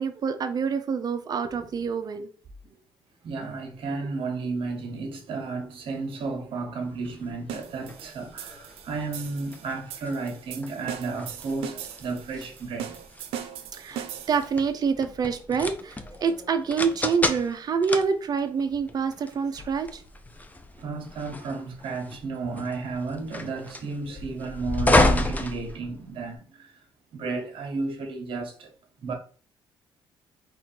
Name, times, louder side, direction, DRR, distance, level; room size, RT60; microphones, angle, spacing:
voice 1, 0.0-2.3 13.7-20.0, right 6 dB, 45° right, 0.7 m, -27 dB
voice 2, 3.2-13.0 20.7-26.8 27.1-28.7 29.0-29.1, right 3 dB, 65° right, 1.3 m, -33 dB
sound 1, 7.0-26.4, left 2 dB, 15° left, 0.6 m, -31 dB
sound 2, 7.5-14.6, right 9 dB, 90° right, 0.6 m, -39 dB
4.4 x 2.6 x 4.5 m
cardioid pair, 105°, 10 cm